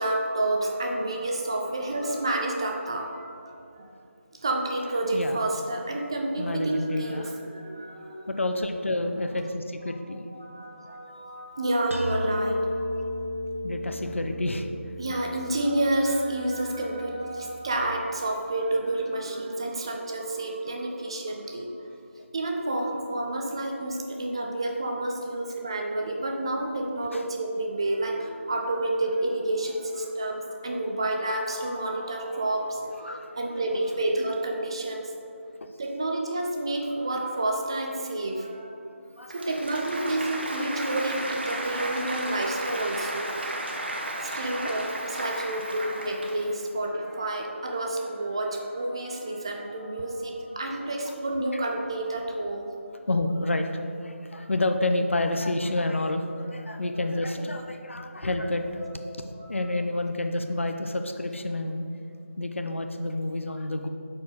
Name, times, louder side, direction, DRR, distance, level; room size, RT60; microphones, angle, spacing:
voice 1, 0.0-3.9 4.3-8.3 10.3-13.0 15.0-21.8 22.3-35.1 35.8-38.8 39.3-43.3 44.2-52.7 56.7-56.8 58.8-58.9 59.4-59.6, right 1 dB, 20° right, 1 dB, 0.4 m, -29 dB
voice 2, 6.4-7.3 8.3-10.2 10.9-11.0 13.6-14.7 15.1-15.2 27.1-27.2 33.0-33.4 35.6-35.7 39.2-39.6 44.3-44.7 51.1-51.2 53.1-58.8 59.2-61.9 62.4-63.9, left 2 dB, 65° left, 6 dB, 0.6 m, -29 dB
sound 1, 11.9-17.7, left 1 dB, 80° right, 0.9 m, -34 dB
Applause, 39.2-46.6, right 1 dB, 50° right, 0.9 m, -34 dB
8.3 x 4.3 x 3.7 m, 2.6 s
figure-of-eight pair, 165°, 7 cm